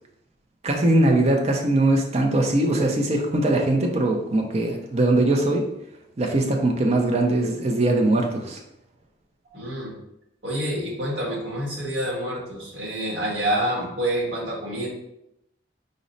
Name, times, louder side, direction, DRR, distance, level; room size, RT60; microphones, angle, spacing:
voice 1, 0.6-5.6 6.2-8.6, right 2 dB, 35° right, 2 dB, 0.5 m, -21 dB
voice 2, 9.5-9.9 10.4-14.9, right 1 dB, 80° right, -4 dB, 1.4 m, -27 dB
5.1 x 2.0 x 3.9 m, 0.83 s
head